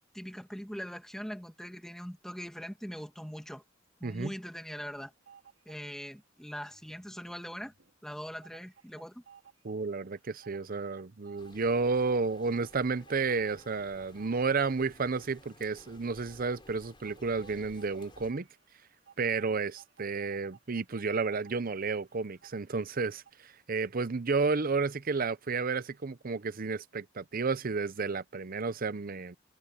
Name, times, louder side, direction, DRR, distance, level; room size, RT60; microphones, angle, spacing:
voice 1, 0.1-3.6 4.0-5.1 5.7-7.7 8.0-9.2, equal, 5° left, 2.0 m, -41 dB
voice 2, 4.0-4.3 9.6-18.5 19.2-29.4, right 4 dB, 45° right, 0.7 m, -31 dB
sound 1, 5.0-6.2 6.5-23.3, right 7 dB, 65° right, 2.2 m, -59 dB
sound 2, 11.4-18.3, left 2 dB, 25° left, 3.6 m, -56 dB
head